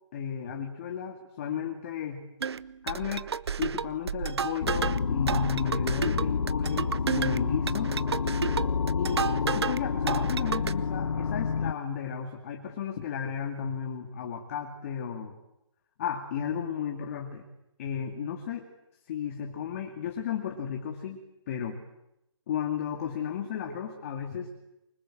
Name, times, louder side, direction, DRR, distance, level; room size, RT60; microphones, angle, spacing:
voice 1, 0.1-2.2 2.8-3.3 3.6-7.9 9.0-9.2 9.5-15.3 16.0-17.5 17.8-18.7 19.1-21.2 21.5-21.8 22.5-24.5, left 8 dB, 30° left, 3 dB, 2.4 m, -34 dB
sound 1, 2.4-9.8 10.1-10.7, right 6 dB, 60° right, 0.9 m, -31 dB
sound 2, 4.6-11.7, left 5 dB, 80° left, 1.0 m, -29 dB
26.0 x 24.5 x 7.7 m, 0.85 s
hypercardioid pair, 170°, 16 cm